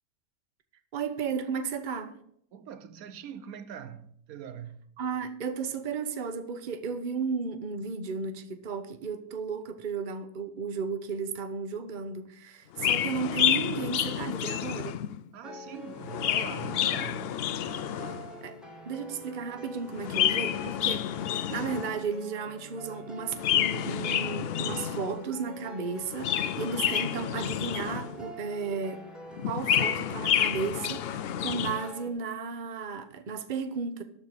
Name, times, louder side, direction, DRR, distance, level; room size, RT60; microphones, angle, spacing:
voice 1, 0.9-2.2 5.0-15.0 18.4-29.1 29.4-34.0, right 5 dB, 40° right, 0.9 m, -34 dB
voice 2, 2.5-4.9 15.3-17.4, right 8 dB, 80° right, 1.1 m, -42 dB
Chirp tweet, 12.7-15.2 15.9-18.4 19.9-22.1 23.3-25.2 26.0-28.3 29.4-31.9, left 10 dB, 70° left, 0.5 m, -29 dB
sound 1, 15.4-32.1, equal, ahead, 1.9 m, -45 dB
12.5 x 4.6 x 8.2 m
omnidirectional pair, 1.5 m